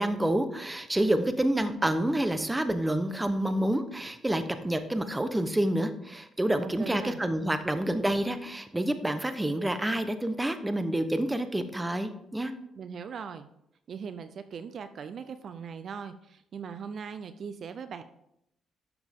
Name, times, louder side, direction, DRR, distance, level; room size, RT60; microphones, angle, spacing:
voice 1, 0.0-12.5, right 1 dB, 10° right, 9 dB, 1.0 m, -28 dB
voice 2, 6.6-7.2 12.8-13.5 13.9-18.0, right 6 dB, 55° right, 11 dB, 0.6 m, -39 dB
11.5 x 7.2 x 3.7 m, 0.77 s
cardioid pair, 90°, 0 cm